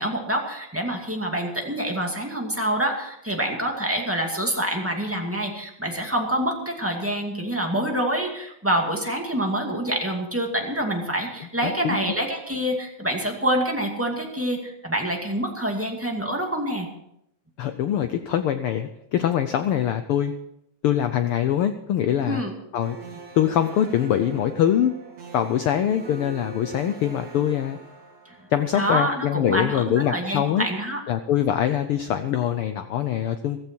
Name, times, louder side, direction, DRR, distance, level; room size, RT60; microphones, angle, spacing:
voice 1, 0.0-16.9 22.2-22.5 28.3-28.4 28.7-31.0, right 1 dB, 5° right, 1 dB, 1.8 m, -26 dB
voice 2, 11.6-12.0 17.6-20.3 20.8-22.4 22.7-23.0 23.3-24.9 25.3-27.8 28.5-30.7 31.1-33.6, left 10 dB, 80° left, 9 dB, 1.2 m, -23 dB
sound 1, 22.8-29.1, right 5 dB, 65° right, 4.6 m, -42 dB
15.5 x 14.5 x 4.5 m, 0.79 s
omnidirectional pair, 3.3 m